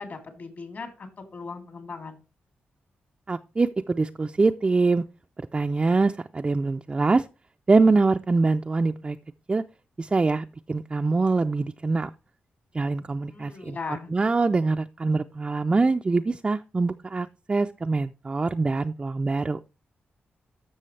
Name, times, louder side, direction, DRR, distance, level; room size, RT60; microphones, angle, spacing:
voice 1, 0.0-2.2 13.3-14.1, left 4 dB, 55° left, 4 dB, 3.1 m, -38 dB
voice 2, 3.3-5.0 5.5-7.3 7.7-9.2 9.5-9.6 10.0-12.1 12.7-13.8 14.1-19.6, right 3 dB, 25° right, 6 dB, 0.4 m, -24 dB
13.0 x 6.1 x 3.2 m, 0.31 s
cardioid pair, 85°, 4 cm